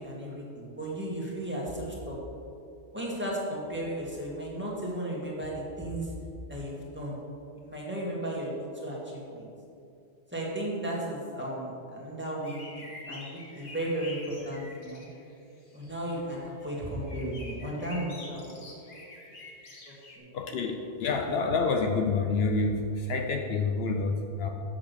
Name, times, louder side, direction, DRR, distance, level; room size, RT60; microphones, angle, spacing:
voice 1, 0.0-2.2 2.9-6.1 6.5-7.2 7.6-9.5 10.3-15.1 15.7-19.0 19.2-19.3 20.2-20.3, right 1 dB, 10° right, -4 dB, 1.8 m, -35 dB
sound 1, 12.4-15.3 15.7-20.2, left 2 dB, 50° left, 1.3 m, -47 dB
voice 2, 20.3-24.5, left 3 dB, 65° left, 4 dB, 0.8 m, -28 dB
7.3 x 6.1 x 6.7 m, 2.6 s
omnidirectional pair, 1.2 m